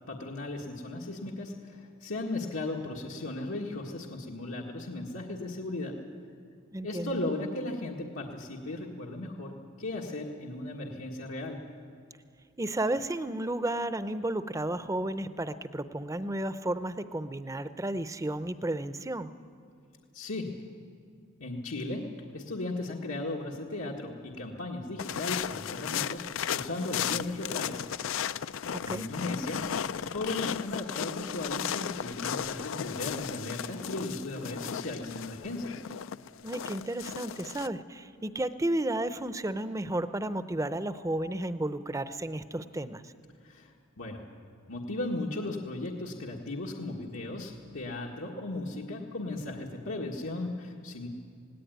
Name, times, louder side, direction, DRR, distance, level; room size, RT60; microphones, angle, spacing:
voice 1, 0.0-6.0 6.8-11.6 20.1-20.5 21.4-22.1 22.3-27.9 28.8-29.7 30.1-35.8 43.4-44.2 44.7-51.1, left 2 dB, 85° left, -1 dB, 1.7 m, -36 dB
voice 2, 6.7-7.2 12.6-19.3 28.9-29.1 36.4-43.1, right 1 dB, 15° right, 12 dB, 0.6 m, -32 dB
sound 1, 25.0-37.7, left 8 dB, 70° left, 0.4 m, -35 dB
18.0 x 18.0 x 9.3 m, 2.4 s
head